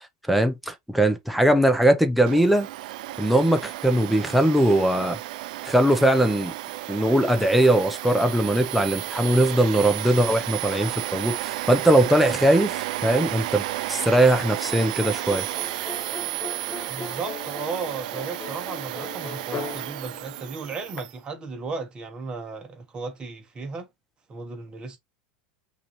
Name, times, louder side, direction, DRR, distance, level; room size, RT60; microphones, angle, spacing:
voice 1, 0.3-2.7 3.2-5.2 5.6-6.5 6.9-15.5, right 1 dB, ahead, 0.7 m, -20 dB
Domestic sounds home sounds, 2.3-21.1, right 16 dB, 70° right, 0.4 m, -33 dB
sound 1, 14.5-21.0, left 4 dB, 25° left, 1.1 m, -39 dB
voice 2, 16.9-23.9 24.3-25.0, right 4 dB, 20° right, 1.3 m, -35 dB
5.8 x 2.7 x 3.1 m
supercardioid pair, 155°, 4 cm